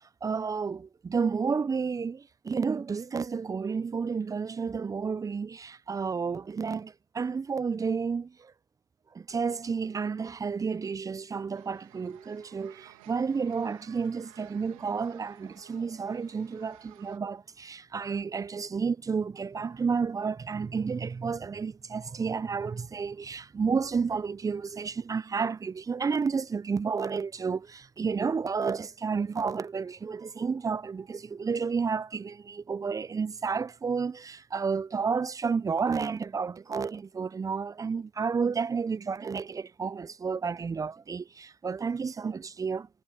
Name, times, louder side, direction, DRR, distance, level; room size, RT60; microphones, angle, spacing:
voice 1, 0.2-8.5 9.1-42.9, right 5 dB, 20° right, 0.9 m, -31 dB
sound 1, 11.5-17.2, right 20 dB, 70° right, 3.3 m, -56 dB
hypercardioid pair, 80°, 18 cm